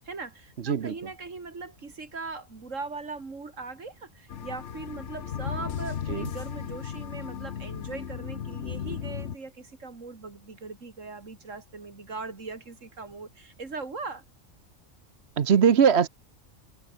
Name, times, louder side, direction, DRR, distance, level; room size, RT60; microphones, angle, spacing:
voice 1, 0.0-14.2, right 4 dB, 75° right, 3.1 m, -40 dB
voice 2, 0.6-0.9 6.1-6.3 15.4-16.1, right 7 dB, 55° right, 1.2 m, -21 dB
Abadoned Cave Factory Atmo Background, 4.3-9.4, left 8 dB, 65° left, 1.3 m, -35 dB
omnidirectional pair, 1.3 m